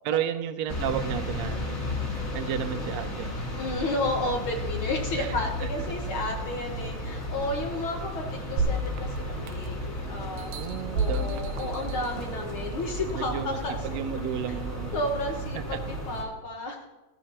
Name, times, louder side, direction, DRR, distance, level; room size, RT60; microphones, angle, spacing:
voice 1, 0.0-1.7 2.3-3.3 5.1-5.7 10.5-11.5 13.1-15.0 15.6-16.0, right 9 dB, 75° right, 10 dB, 1.8 m, -33 dB
sound 1, 0.7-16.2, equal, 30° left, 1.4 m, -34 dB
voice 2, 3.6-10.5 10.9-13.8 14.9-16.9, left 2 dB, 60° left, 2 dB, 1.5 m, -32 dB
sound 2, 8.6-9.9 10.4-12.5 13.1-13.2, right 2 dB, 90° right, 2.2 m, -31 dB
14.5 x 14.5 x 2.9 m, 1.1 s
omnidirectional pair, 3.4 m